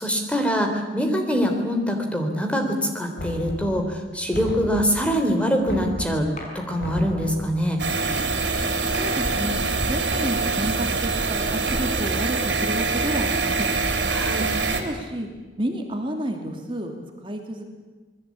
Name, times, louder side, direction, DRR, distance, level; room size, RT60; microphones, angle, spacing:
voice 1, 0.0-6.3 6.5-7.8 14.1-14.5, equal, 5° left, 4 dB, 3.4 m, -24 dB
Knock, 3.2-3.9 4.3-5.1 5.7-6.3 6.8-7.5, equal, 65° left, 7.7 m, -33 dB
sound 1, 6.4-7.5 8.9-10.1 11.7-12.7, left 2 dB, 40° left, 6.2 m, -43 dB
sound 2, 7.8-14.8, right 3 dB, 80° right, 3.9 m, -24 dB
voice 2, 9.0-9.5 9.9-13.7 14.8-15.3 15.6-16.9 17.2-17.6, right 1 dB, 30° right, 3 dB, 2.7 m, -30 dB
27.0 x 20.5 x 8.5 m, 1.3 s
head